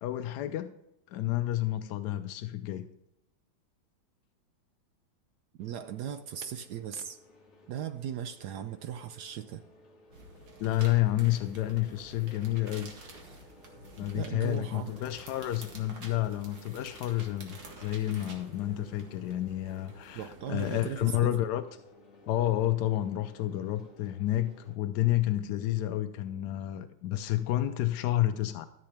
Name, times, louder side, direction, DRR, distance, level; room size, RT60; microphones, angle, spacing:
voice 1, 0.0-0.7 1.1-2.9 10.6-12.9 13.9-21.6 22.3-28.7, left 14 dB, 75° left, 0.9 m, -30 dB
sound 1, 5.6-24.8, left 2 dB, 35° left, 1.5 m, -57 dB
voice 2, 5.6-7.2 7.7-9.6 14.1-14.9 20.1-21.4, right 9 dB, 80° right, 0.9 m, -38 dB
sound 2, 10.1-21.3, equal, 45° right, 3.3 m, -56 dB
sound 3, 10.1-21.1, right 3 dB, 60° right, 2.3 m, -52 dB
13.0 x 7.7 x 3.4 m
omnidirectional pair, 2.3 m